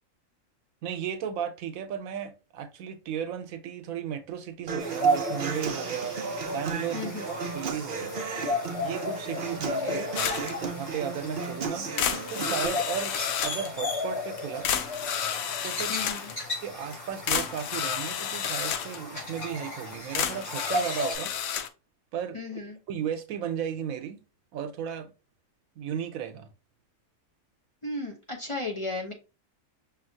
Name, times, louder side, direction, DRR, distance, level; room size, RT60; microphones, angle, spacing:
voice 1, 0.8-6.2 6.5-8.1 8.8-11.9 12.3-13.2 13.4-14.7 15.6-16.0 16.6-21.3 22.1-22.6 22.9-24.2 24.5-25.1 25.8-26.5, right 8 dB, 90° right, 1.1 m, -35 dB
Human voice / Acoustic guitar, 4.7-12.7, right 4 dB, 55° right, 0.6 m, -35 dB
sound 1, 4.8-21.2, equal, 50° left, 3.1 m, -34 dB
voice 2, 6.9-7.3 9.8-10.0 15.9-16.3 22.3-22.8 27.8-29.1, left 2 dB, 30° left, 0.7 m, -35 dB
sound 2, 10.2-10.6 11.0-11.1 11.4-11.5 12.0-13.7 14.4-14.5 14.6-16.4 16.9-17.0 17.3-19.0 19.9-21.7, left 8 dB, 90° left, 1.0 m, -31 dB
5.7 x 2.7 x 2.7 m
omnidirectional pair, 1.4 m